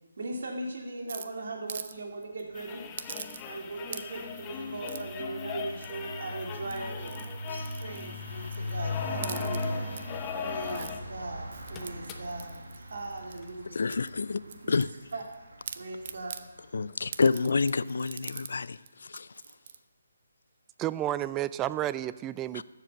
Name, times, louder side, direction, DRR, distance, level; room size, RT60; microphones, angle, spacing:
voice 1, 0.2-2.8 3.5-7.3 7.8-9.8 10.3-13.8 14.5-14.8 15.1-15.2 15.7-16.5, right 2 dB, 65° right, 1 dB, 2.3 m, -39 dB
sound 1, 1.1-1.9 2.2-2.4 3.0-3.6 3.9-4.3 4.9-5.2 5.8-6.2 6.6-8.8 9.1-10.0 10.5-10.9 11.5-13.5 13.9-15.3 15.6-16.4 17.1-18.5 18.9-19.0 19.1-19.8, right 7 dB, 45° right, 0.7 m, -43 dB
sound 2, 2.5-11.1 11.4-11.5 11.7-12.4 13.4-13.5, left 7 dB, 20° left, 0.8 m, -39 dB
sound 3, 2.9-3.2 3.5-16.6, left 1 dB, 80° right, 1.8 m, -40 dB
voice 2, 13.7-14.9 16.7-19.3 22.5-22.6, left 4 dB, 65° left, 17 dB, 0.4 m, -28 dB
voice 3, 20.8-22.6, right 13 dB, 15° right, 17 dB, 0.3 m, -31 dB
13.5 x 7.5 x 6.6 m, 1.2 s
figure-of-eight pair, 150°, 0 cm